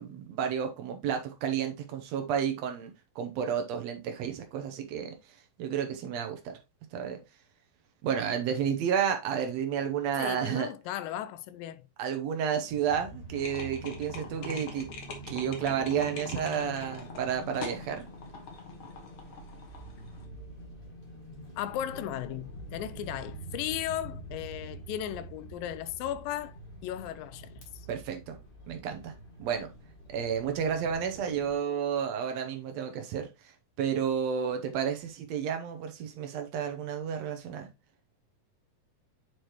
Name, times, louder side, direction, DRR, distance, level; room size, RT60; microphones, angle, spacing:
voice 1, 0.0-5.1 5.6-6.6 6.9-7.2 8.0-10.7 12.0-14.9 15.3-18.1 27.9-28.4 28.7-29.1 29.4-29.7 30.1-33.5 33.8-37.7, right 8 dB, 80° right, 1.5 m, -31 dB
voice 2, 10.2-11.9 21.6-27.9, left 12 dB, 80° left, 2.2 m, -36 dB
sound 1, 12.8-31.5, right 1 dB, 25° left, 1.2 m, -46 dB
sound 2, 13.4-20.2, left 4 dB, 60° left, 1.4 m, -44 dB
8.4 x 4.7 x 2.9 m
omnidirectional pair, 4.2 m